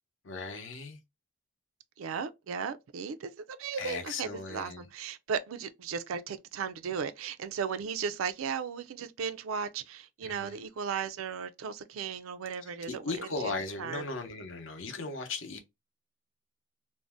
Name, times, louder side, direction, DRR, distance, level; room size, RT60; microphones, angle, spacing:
voice 1, 0.2-1.0 3.7-4.9 10.2-10.6 12.7-15.6, left 3 dB, 65° left, 0.7 m, -37 dB
voice 2, 2.0-13.5 13.8-14.0, right 6 dB, 80° right, 0.4 m, -36 dB
2.6 x 2.1 x 3.3 m
head